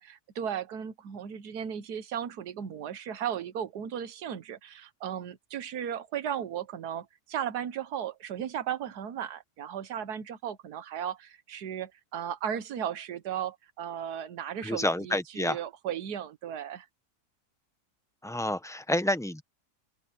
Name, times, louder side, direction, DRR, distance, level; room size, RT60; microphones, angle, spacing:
voice 1, 0.0-16.9, right 9 dB, 85° right, 1.6 m, -36 dB
voice 2, 14.6-15.6 18.2-19.4, left 1 dB, 5° left, 0.4 m, -29 dB
open air
omnidirectional pair, 1.7 m